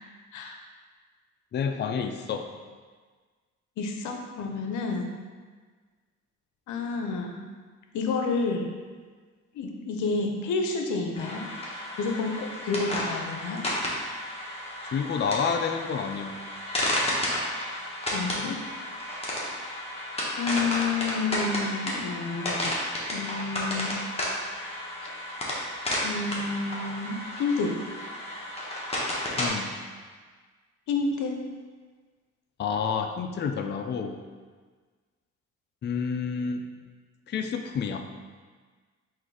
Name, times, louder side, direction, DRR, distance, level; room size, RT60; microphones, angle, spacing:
voice 1, 1.5-2.4 14.9-16.4 29.4-29.8 32.6-34.2 35.8-36.6 37.3-38.0, left 6 dB, 35° left, 5 dB, 0.4 m, -29 dB
voice 2, 3.8-5.2 6.7-7.4 7.9-8.7 9.5-11.5 12.0-13.6 18.1-18.6 20.4-22.7 23.1-23.9 25.0-25.1 26.0-27.7 30.9-31.4, left 4 dB, 75° left, 3 dB, 0.7 m, -29 dB
sound 1, 11.1-29.5, left 1 dB, 20° left, 1.1 m, -32 dB
3.8 x 2.6 x 4.7 m, 1.5 s
cardioid pair, 90°, 30 cm